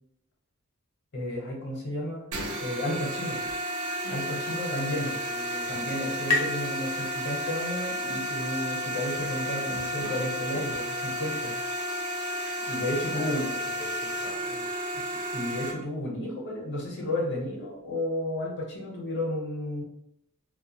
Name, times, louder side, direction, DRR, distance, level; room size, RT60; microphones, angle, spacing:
voice 1, 1.1-3.4 4.1-5.1 5.7-11.5 12.7-13.4 15.3-19.8, left 1 dB, 55° left, -2 dB, 0.7 m, -32 dB
sound 1, 2.3-15.7, equal, 85° right, 0.5 m, -32 dB
sound 2, 4.8-8.2, left 3 dB, 80° left, 0.6 m, -34 dB
voice 2, 5.3-5.7 13.1-14.7, equal, 15° left, -5 dB, 0.3 m, -43 dB
2.5 x 2.2 x 2.7 m, 0.82 s
head